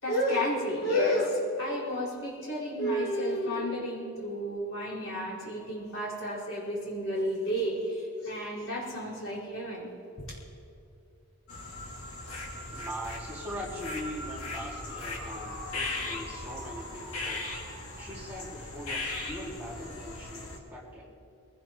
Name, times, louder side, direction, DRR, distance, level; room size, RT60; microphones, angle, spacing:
voice 1, 0.0-9.9 10.2-10.4, equal, 60° left, -7 dB, 4.8 m, -31 dB
sound 1, 11.5-20.6, left 2 dB, 80° left, 2.3 m, -38 dB
voice 2, 12.7-17.5 18.0-21.1, equal, 10° right, -6 dB, 2.2 m, -41 dB
22.5 x 17.0 x 3.1 m, 2.6 s
head